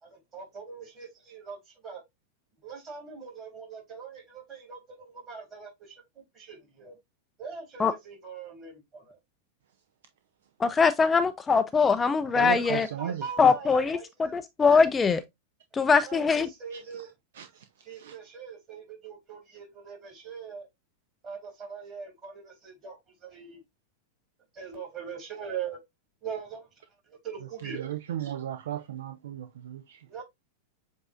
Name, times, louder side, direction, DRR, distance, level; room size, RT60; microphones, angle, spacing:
voice 1, 0.0-2.0 2.6-6.0 6.3-6.9 7.4-9.2 12.6-14.3 15.8-17.1 17.8-20.7 21.2-23.0 23.2-23.6 24.5-25.8 26.2-26.7 27.1-27.9 30.1-30.2, right 6 dB, 30° right, 3.6 m, -41 dB
voice 2, 10.6-12.9 13.4-15.2 15.7-16.5, left 5 dB, 20° left, 0.4 m, -22 dB
voice 3, 12.4-13.2 17.4-17.5 18.0-18.1 27.6-30.0, right 10 dB, 65° right, 0.5 m, -35 dB
7.6 x 2.7 x 2.5 m
figure-of-eight pair, 95°, 0 cm